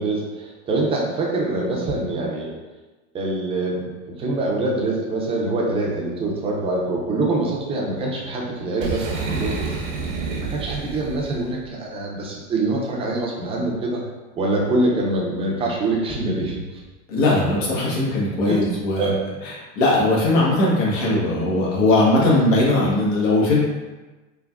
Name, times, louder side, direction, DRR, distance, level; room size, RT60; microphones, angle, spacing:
voice 1, 0.0-2.5 3.1-9.7 10.4-14.0 14.3-16.6 18.5-18.6 19.0-19.2, right 2 dB, 15° right, -2 dB, 0.5 m, -24 dB
Boom, 8.8-11.5, right 4 dB, 75° right, 0.8 m, -29 dB
voice 2, 17.1-19.1 19.4-23.6, left 2 dB, 70° left, -5 dB, 1.1 m, -19 dB
3.6 x 2.2 x 2.2 m, 1.2 s
hypercardioid pair, 120°, 39 cm